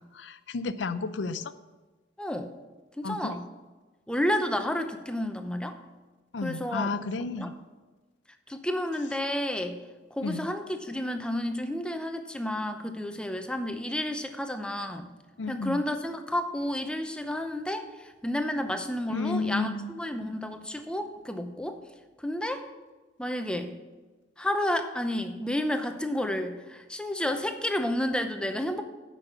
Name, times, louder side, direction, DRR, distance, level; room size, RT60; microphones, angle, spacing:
voice 1, 0.1-1.5 3.0-3.4 6.3-7.5 10.2-10.5 15.4-15.8 19.1-19.9, left 3 dB, 75° left, 13 dB, 0.5 m, -32 dB
voice 2, 2.2-2.5 3.0-3.5 4.1-5.8 6.4-6.9 7.4-7.5 8.5-9.8 10.1-15.1 15.5-21.8 22.2-22.6 23.2-23.7 24.4-28.8, left 1 dB, 5° left, 7 dB, 0.6 m, -31 dB
9.6 x 6.1 x 6.8 m, 1.2 s
head